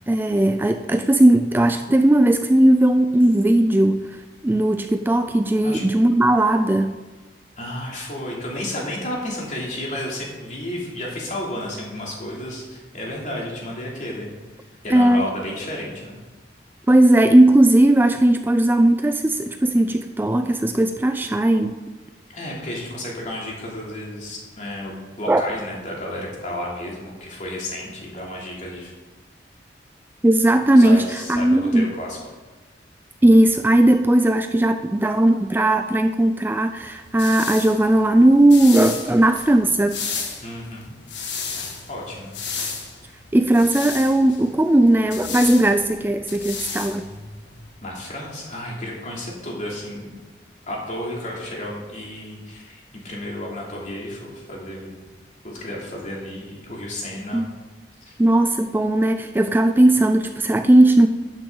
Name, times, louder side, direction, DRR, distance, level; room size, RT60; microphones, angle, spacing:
voice 1, 0.1-4.2 4.4-6.9 14.9-15.2 16.9-21.8 25.3-25.4 30.2-31.0 31.3-31.9 33.2-40.0 43.3-47.0 57.3-57.5 58.2-61.1, right 1 dB, 10° right, 8 dB, 0.3 m, -17 dB
voice 2, 7.6-14.3 14.8-16.2 22.3-28.9 30.7-32.2 40.4-40.9 41.9-42.3 47.8-50.1 50.7-54.9 55.4-57.5 58.0-58.1, left 1 dB, 45° left, -3 dB, 3.0 m, -32 dB
sound 1, 36.8-47.7, left 5 dB, 85° left, 1.9 m, -34 dB
12.0 x 8.9 x 3.9 m, 1.3 s
head